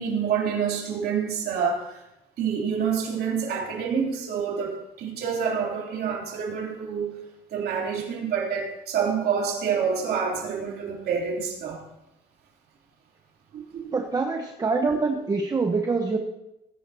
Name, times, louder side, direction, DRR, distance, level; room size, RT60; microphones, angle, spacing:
voice 1, 0.0-2.0 2.4-7.2 7.5-11.8 13.5-13.9 14.9-15.0, right 6 dB, 70° right, -1 dB, 3.1 m, -27 dB
voice 2, 13.9-16.2, right 4 dB, 20° right, 2 dB, 1.0 m, -25 dB
18.5 x 10.0 x 2.8 m, 0.90 s
cardioid pair, 110°, 17 cm